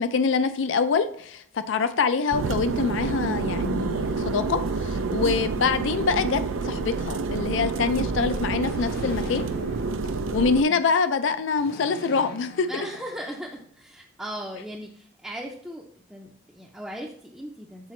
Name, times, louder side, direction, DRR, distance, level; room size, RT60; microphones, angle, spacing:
voice 1, 0.0-9.5 10.3-12.9, left 5 dB, 70° left, 11 dB, 0.4 m, -25 dB
sound 1, 2.3-10.6, right 4 dB, 85° right, 0.5 m, -28 dB
voice 2, 4.9-5.4 10.7-10.8 12.7-17.9, equal, 5° right, -3 dB, 0.5 m, -38 dB
sound 2, 8.6-10.8 11.5-13.8, left 2 dB, 50° left, 0.8 m, -44 dB
7.5 x 4.0 x 3.1 m, 0.63 s
head